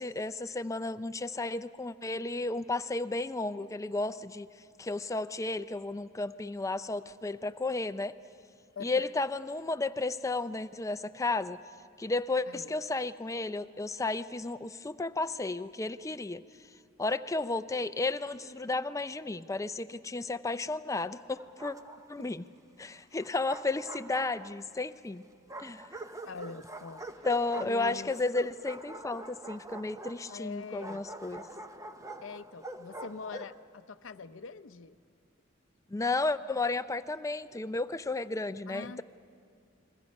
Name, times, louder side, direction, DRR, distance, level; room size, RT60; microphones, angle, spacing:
voice 1, 0.0-4.5 4.8-8.1 8.8-11.6 12.0-16.4 17.0-21.8 22.1-22.4 22.8-25.2 25.6-25.8 27.2-31.4 35.9-39.0, left 3 dB, 15° left, 13 dB, 0.5 m, -33 dB
voice 2, 8.8-9.1 12.4-12.7 26.2-27.3 27.6-28.2 30.3-31.0 32.2-35.0 38.7-39.0, left 4 dB, 75° left, 12 dB, 0.6 m, -44 dB
Bark, 21.4-22.3 23.2-24.8 25.5-33.6, right 2 dB, 15° right, 0.8 m, -45 dB
29.5 x 22.0 x 5.4 m, 2.4 s
head